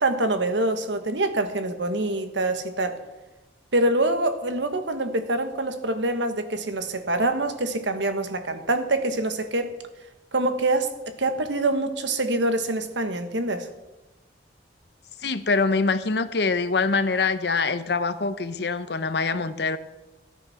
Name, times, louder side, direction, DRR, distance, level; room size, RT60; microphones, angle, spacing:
voice 1, 0.0-3.0 3.7-9.7 10.3-10.9 11.2-13.7, right 2 dB, 80° right, 8 dB, 1.4 m, -25 dB
voice 2, 15.2-19.8, left 4 dB, 65° left, 12 dB, 0.8 m, -24 dB
13.5 x 9.2 x 5.7 m, 1.1 s
head